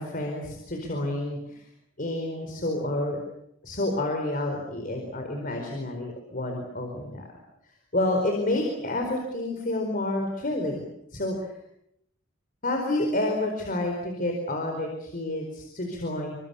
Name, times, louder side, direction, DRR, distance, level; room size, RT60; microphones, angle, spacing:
voice 1, 0.0-1.6 2.0-3.2 3.6-7.3 7.9-11.5 12.6-16.4, left 1 dB, 40° left, 3 dB, 4.6 m, -29 dB
29.0 x 25.0 x 7.1 m, 0.78 s
head